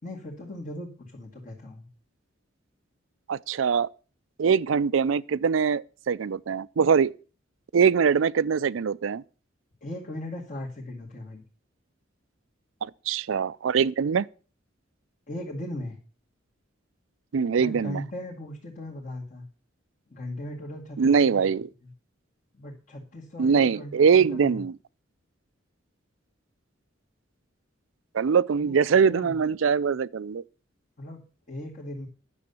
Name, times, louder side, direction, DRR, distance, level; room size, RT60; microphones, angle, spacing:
voice 1, 0.0-1.9 9.8-11.4 15.3-16.0 17.6-19.4 20.1-21.4 21.8-21.9 22.5-24.6 28.6-29.3 31.0-32.1, left 1 dB, 45° left, 2.1 m, -38 dB
voice 2, 3.3-3.9 4.4-7.1 7.7-9.2 12.8-14.3 17.3-18.0 21.0-21.7 23.4-24.7 28.1-30.4, right 6 dB, 80° right, 0.4 m, -23 dB
10.5 x 7.0 x 6.9 m
head